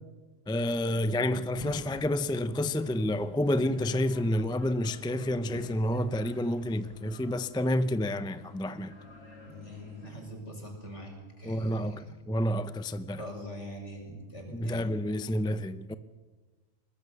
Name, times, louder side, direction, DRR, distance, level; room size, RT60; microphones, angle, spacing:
voice 1, 0.5-8.9 11.4-13.2 14.5-16.0, left 1 dB, 5° left, 0.4 m, -29 dB
sound 1, 1.0-10.1, left 2 dB, 85° left, 5.5 m, -49 dB
voice 2, 9.4-12.1 13.2-15.1, equal, 65° left, 5.4 m, -43 dB
22.0 x 20.0 x 6.8 m
omnidirectional pair, 1.3 m